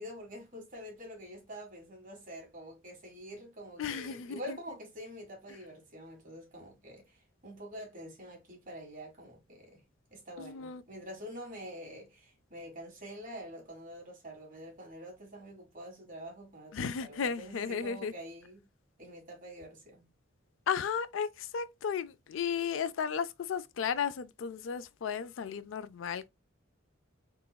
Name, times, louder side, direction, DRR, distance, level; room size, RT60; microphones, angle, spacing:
voice 1, 0.0-9.8 10.1-18.7 19.0-20.1, equal, 40° right, 1.6 m, -46 dB
voice 2, 3.8-4.6 10.4-10.8 16.7-18.1 20.7-26.3, left 7 dB, 70° left, 0.4 m, -34 dB
3.6 x 3.0 x 2.2 m
head